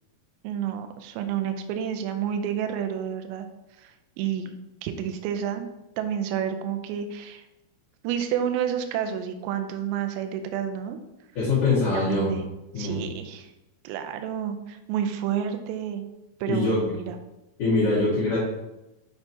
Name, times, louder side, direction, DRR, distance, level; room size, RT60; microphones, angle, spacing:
voice 1, 0.4-3.5 3.8-3.9 4.2-5.7 6.0-7.4 8.0-11.0 11.9-12.4 12.8-13.5 13.8-16.0 16.4-17.2, right 9 dB, 90° right, 7 dB, 2.5 m, -30 dB
voice 2, 11.3-12.3 12.7-13.1 16.5-16.8 17.6-18.4, left 3 dB, 85° left, -9 dB, 1.3 m, -23 dB
6.7 x 5.7 x 2.7 m, 0.97 s
omnidirectional pair, 5.6 m